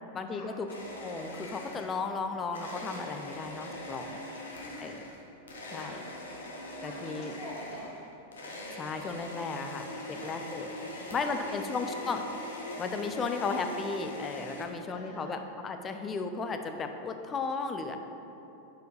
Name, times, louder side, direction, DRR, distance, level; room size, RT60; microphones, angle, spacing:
voice 1, 0.1-0.7 1.0-4.2 4.8-5.0 5.7-6.0 6.8-7.3 8.7-10.7 11.1-12.2 12.8-18.0, left 4 dB, 20° left, 7 dB, 0.5 m, -35 dB
sound 1, 0.7-2.1 2.5-14.6, left 1 dB, 70° left, 0.9 m, -42 dB
voice 2, 4.5-5.0 5.8-5.9 6.8-7.9 9.9-12.1 14.9-15.4, left 1 dB, 40° left, -4 dB, 1.4 m, -47 dB
6.3 x 4.6 x 4.8 m, 2.9 s
figure-of-eight pair, 90°, 0 cm